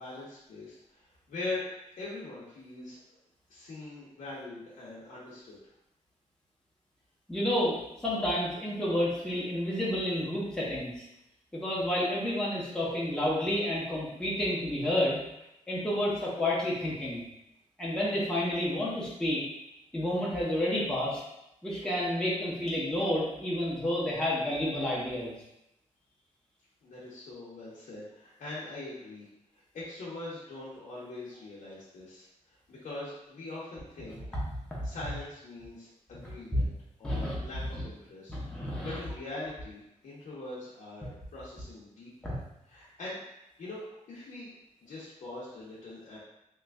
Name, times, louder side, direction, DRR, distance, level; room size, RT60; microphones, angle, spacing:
voice 1, 0.0-3.0 3.5-5.6 26.8-29.3 29.7-34.2 34.8-36.7 37.0-42.4 42.7-43.2 43.6-44.5 44.8-46.2, left 2 dB, 85° left, -8 dB, 0.8 m, -42 dB
voice 2, 7.3-11.0 11.5-15.2 15.7-17.2 17.8-19.4 19.9-21.2 21.6-25.3 34.5-34.8 36.5-36.6 37.0-37.4 37.7-37.8 38.3-39.0 42.2-42.4, left 1 dB, 5° left, -7 dB, 0.7 m, -30 dB
3.1 x 2.3 x 3.4 m, 0.86 s
wide cardioid pair, 145°, 13 cm